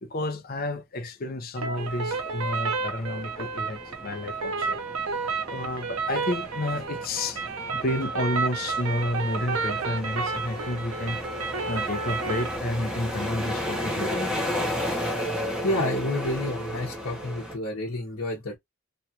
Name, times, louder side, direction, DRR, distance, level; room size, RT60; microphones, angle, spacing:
voice 1, 0.0-4.8 5.5-11.2 11.7-14.4, left 1 dB, 40° left, 0.6 m, -31 dB
sound 1, 1.6-12.6, right 4 dB, 80° right, 0.8 m, -31 dB
sound 2, 1.8-17.6, equal, 5° right, 0.8 m, -34 dB
voice 2, 15.6-18.6, left 1 dB, 65° left, 1.0 m, -29 dB
3.0 x 2.4 x 2.8 m
head